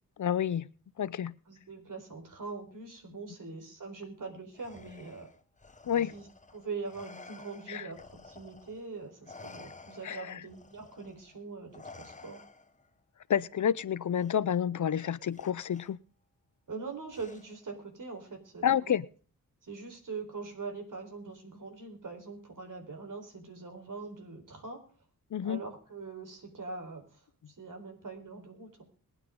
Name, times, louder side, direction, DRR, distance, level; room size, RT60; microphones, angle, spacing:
voice 1, 0.2-0.7 1.0-1.3 5.9-6.1 7.7-7.9 10.0-10.4 13.3-16.0 18.6-19.1 25.3-25.6, left 9 dB, 55° left, 0.6 m, -29 dB
voice 2, 1.5-5.3 6.1-6.3 6.5-12.5 16.7-18.9 19.6-24.8 25.4-28.8, right 4 dB, 60° right, 4.3 m, -43 dB
Respiratory sounds, 4.5-8.9 9.2-12.9 14.1-14.3 15.3-15.9 17.1-17.7, left 3 dB, 20° left, 1.0 m, -52 dB
22.5 x 9.2 x 3.8 m
cardioid pair, 65°, 35 cm